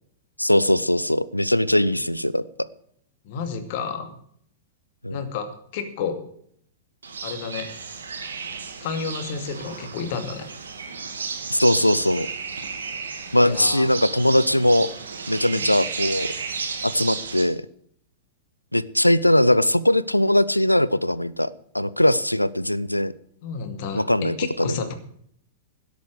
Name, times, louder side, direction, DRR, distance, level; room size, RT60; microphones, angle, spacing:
voice 1, 0.4-2.4 5.0-5.2 11.5-12.3 13.3-14.9 15.3-16.3 16.8-17.6 18.7-21.5 21.7-23.1 23.9-24.9, left 1 dB, 90° left, 19 dB, 0.6 m, -20 dB
voice 2, 3.2-4.1 5.1-6.2 7.2-7.7 8.8-10.5 13.4-13.9 15.4-15.6 23.4-24.9, left 6 dB, 50° left, 8 dB, 2.4 m, -31 dB
sound 1, 7.0-17.4, right 5 dB, 70° right, 2.6 m, -33 dB
17.0 x 8.3 x 6.5 m, 0.65 s
figure-of-eight pair, 95°, 0 cm